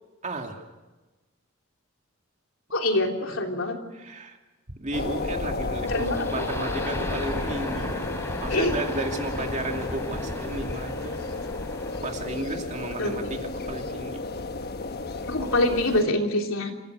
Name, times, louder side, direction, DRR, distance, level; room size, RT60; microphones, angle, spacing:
voice 1, 0.2-0.7 3.9-4.4 4.8-7.9 8.4-11.2 12.0-14.2, right 2 dB, 35° right, 3 dB, 2.6 m, -33 dB
voice 2, 2.7-3.8 5.9-6.4 8.5-8.8 13.0-13.3 15.3-16.7, left 1 dB, 70° left, 2 dB, 3.5 m, -25 dB
sound 1, 4.7-10.7, equal, 70° right, 3.6 m, -38 dB
sound 2, 4.9-16.0, left 3 dB, 50° left, 1.2 m, -33 dB
sound 3, 5.9-12.2, left 1 dB, 10° left, 3.3 m, -36 dB
27.0 x 16.5 x 8.0 m, 1.2 s
head